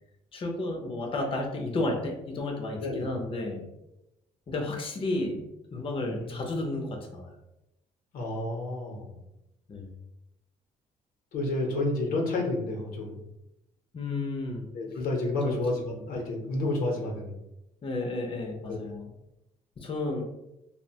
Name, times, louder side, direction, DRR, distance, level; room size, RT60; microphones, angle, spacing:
voice 1, 0.3-3.6 4.5-7.4 9.7-10.0 13.9-14.7 15.4-15.6 17.8-19.1 19.8-20.2, left 2 dB, 35° left, 1 dB, 0.6 m, -32 dB
voice 2, 6.0-6.4 8.1-9.2 11.3-13.2 14.7-17.3 18.7-18.8, left 2 dB, 75° left, 1 dB, 0.7 m, -30 dB
2.7 x 2.0 x 2.7 m, 0.90 s
cardioid pair, 80°, 15 cm